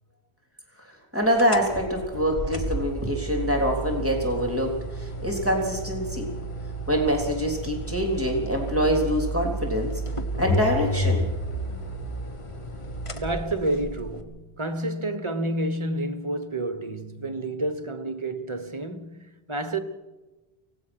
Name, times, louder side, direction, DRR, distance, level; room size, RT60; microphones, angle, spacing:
voice 1, 1.1-6.3 6.9-9.9 10.4-11.3, equal, 10° right, 3.4 m, -25 dB
sound 1, 1.3-14.2, right 1 dB, 30° left, 1.4 m, -31 dB
voice 2, 13.1-19.8, right 1 dB, 30° right, 1.2 m, -29 dB
24.0 x 17.5 x 6.2 m
omnidirectional pair, 1.1 m